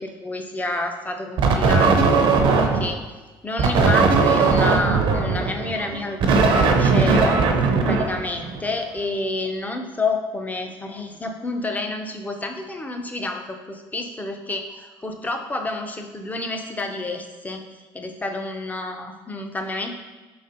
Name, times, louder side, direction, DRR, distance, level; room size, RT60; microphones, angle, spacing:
voice 1, 0.0-3.0 3.4-7.4 7.9-17.6 17.9-19.9, left 2 dB, 15° left, 4 dB, 0.6 m, -29 dB
sound 1, 1.4-3.0 3.6-8.7, right 4 dB, 60° right, 0.6 m, -18 dB
4.7 x 4.1 x 2.7 m, 1.2 s
hypercardioid pair, 70°, 10 cm